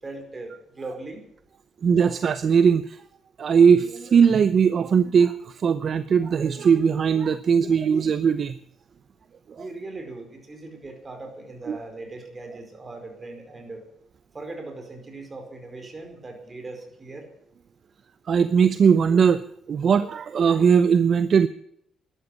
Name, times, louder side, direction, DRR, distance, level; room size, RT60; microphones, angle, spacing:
voice 1, 0.0-1.3 9.6-13.8 14.3-17.3, right 2 dB, 30° right, 5 dB, 5.0 m, -39 dB
voice 2, 1.8-3.0 3.4-5.3 5.6-8.6 11.7-11.8 18.3-19.4 19.7-21.5, right 6 dB, 55° right, 13 dB, 0.7 m, -19 dB
13.0 x 12.0 x 8.5 m, 0.72 s
cardioid pair, 90°, 0 cm